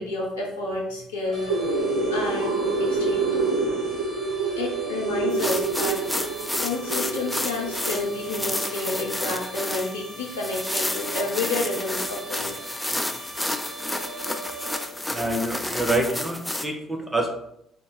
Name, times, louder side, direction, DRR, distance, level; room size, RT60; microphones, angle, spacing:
voice 1, 0.0-1.5 2.1-3.4 4.6-6.0 6.6-12.5, left 3 dB, 80° left, -1 dB, 0.6 m, -30 dB
sound 1, 1.3-14.8, right 2 dB, 40° left, 1.0 m, -39 dB
sound 2, 1.3-8.5, right 3 dB, 80° right, 0.5 m, -27 dB
sound 3, 5.3-16.6, left 1 dB, 10° left, 0.4 m, -31 dB
voice 2, 15.1-17.3, right 1 dB, 10° right, 2 dB, 0.8 m, -26 dB
3.7 x 2.3 x 3.8 m, 0.74 s
figure-of-eight pair, 50°, 0 cm